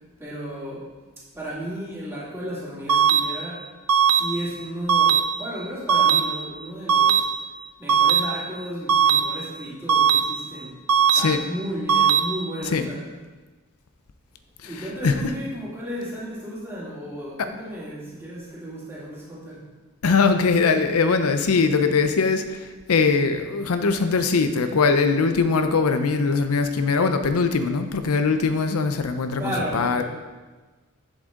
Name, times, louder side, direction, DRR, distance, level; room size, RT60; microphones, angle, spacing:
voice 1, 0.2-0.8 1.3-3.6 4.1-7.3 7.8-10.7 11.2-13.0 14.6-19.6 29.4-30.0, equal, 10° right, -8 dB, 2.4 m, -33 dB
sound 1, 2.9-3.2 3.9-4.2 4.9-5.2 5.9-6.2 6.9-7.2 7.9-8.2 8.9-9.2 9.9-10.2 10.9-11.2 11.9-12.2, right 8 dB, 80° right, 0.5 m, -17 dB
voice 2, 20.0-30.0, left 4 dB, 85° left, 8 dB, 0.6 m, -21 dB
7.8 x 7.3 x 3.7 m, 1.3 s
head